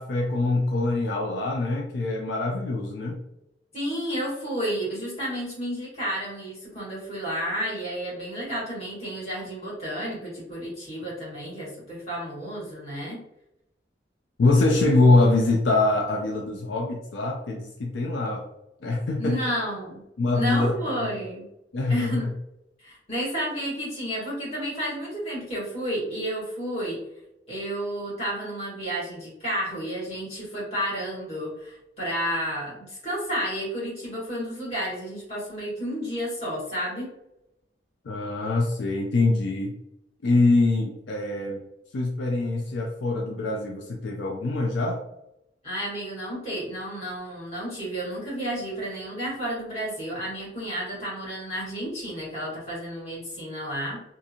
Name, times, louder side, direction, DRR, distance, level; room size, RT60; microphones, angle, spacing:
voice 1, 0.0-3.2 14.4-18.4 18.8-19.4 20.2-20.7 21.0-21.2 21.7-22.2 38.1-39.7 40.2-41.6 41.9-45.0, left 2 dB, 75° left, 1 dB, 0.4 m, -24 dB
voice 2, 3.7-13.2 19.2-20.0 20.3-21.5 21.9-22.3 22.8-27.0 27.5-37.1 45.6-54.0, equal, 35° left, -7 dB, 1.5 m, -31 dB
2.6 x 2.5 x 2.7 m, 0.85 s
head